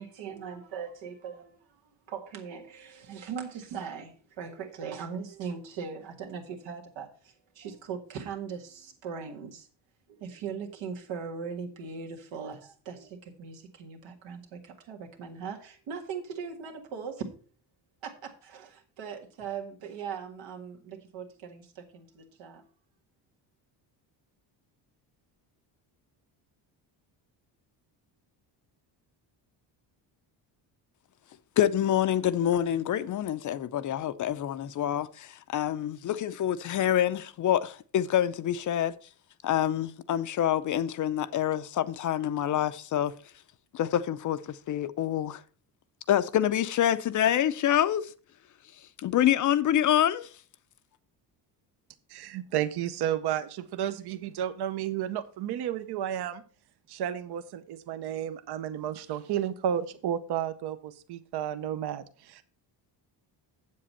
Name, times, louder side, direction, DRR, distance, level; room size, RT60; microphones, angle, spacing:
voice 1, 0.0-1.8 2.1-9.7 10.1-17.3 18.0-22.6, right 6 dB, 90° right, 1.9 m, -40 dB
voice 2, 31.6-38.9 39.4-43.1 43.7-45.4 46.1-48.1 49.0-50.3, left 11 dB, 45° left, 0.5 m, -26 dB
voice 3, 52.1-56.4 56.9-62.4, right 10 dB, 60° right, 0.8 m, -32 dB
7.9 x 7.5 x 4.2 m
cardioid pair, 140°, 43 cm